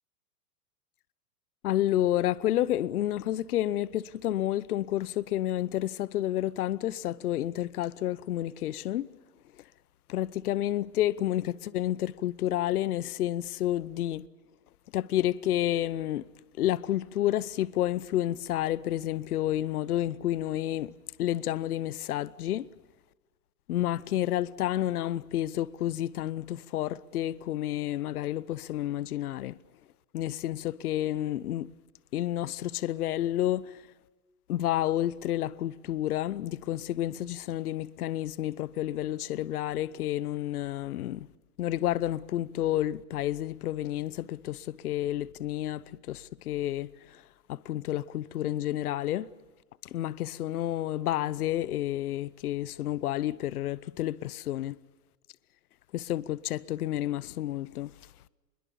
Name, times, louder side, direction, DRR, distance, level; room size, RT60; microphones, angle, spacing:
voice 1, 1.6-9.1 10.1-14.3 14.9-16.2 16.6-20.9 21.2-22.7 23.7-29.5 30.1-31.7 32.1-33.7 34.5-41.3 41.6-47.2 47.5-49.3 49.9-54.8 55.9-57.9, left 13 dB, 65° left, 0.8 m, -30 dB
27.0 x 22.0 x 7.0 m
supercardioid pair, 170°, 48 cm